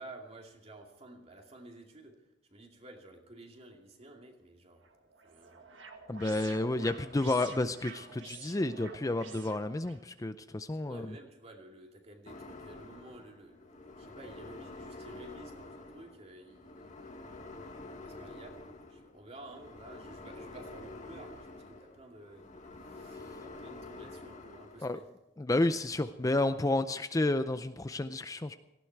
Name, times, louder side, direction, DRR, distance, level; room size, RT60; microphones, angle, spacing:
voice 1, 0.0-2.1 2.5-4.9 5.2-5.6 10.8-17.0 18.0-22.5 22.8-25.1, right 2 dB, 35° right, 2 dB, 2.5 m, -52 dB
sound 1, 4.8-10.0, right 5 dB, 85° right, 1.8 m, -49 dB
voice 2, 6.1-11.1 24.8-25.0 25.4-28.6, left 2 dB, 20° left, 10 dB, 0.5 m, -31 dB
sound 2, 12.3-24.8, left 2 dB, 40° left, 1.7 m, -48 dB
18.0 x 15.5 x 4.7 m, 0.91 s
head